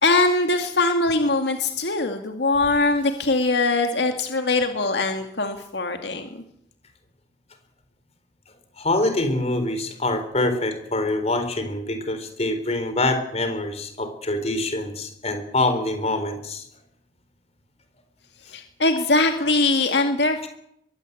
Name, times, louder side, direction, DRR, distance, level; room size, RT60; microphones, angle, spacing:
voice 1, 0.0-6.4 18.5-20.5, left 2 dB, 70° left, 5 dB, 2.3 m, -22 dB
voice 2, 8.8-16.6, left 2 dB, 35° left, 8 dB, 4.1 m, -25 dB
22.5 x 16.5 x 8.4 m, 0.73 s
head